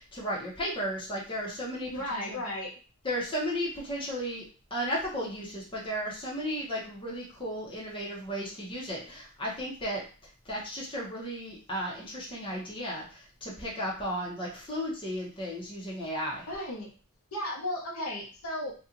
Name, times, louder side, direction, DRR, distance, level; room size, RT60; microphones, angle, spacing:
voice 1, 0.0-2.4 3.0-4.4 4.7-10.0 10.4-16.5, equal, 25° left, -4 dB, 1.0 m, -34 dB
voice 2, 1.9-2.7 16.5-16.9 17.3-18.7, left 1 dB, 70° left, -2 dB, 1.0 m, -34 dB
2.9 x 2.5 x 3.8 m, 0.37 s
head